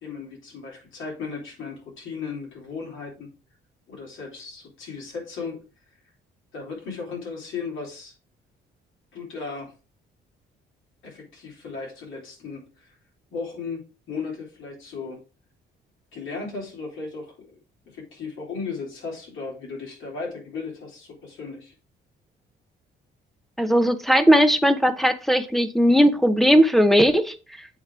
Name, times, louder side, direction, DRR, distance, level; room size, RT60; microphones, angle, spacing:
voice 1, 0.0-3.3 3.9-5.6 6.5-8.1 9.1-9.7 11.0-13.0 13.3-13.8 14.1-15.2 16.1-17.6 17.9-21.7, left 4 dB, 80° left, -2 dB, 3.5 m, -36 dB
voice 2, 23.6-27.7, equal, ahead, 12 dB, 0.8 m, -18 dB
8.1 x 3.6 x 4.7 m, 0.32 s
cardioid pair, 90°, 20 cm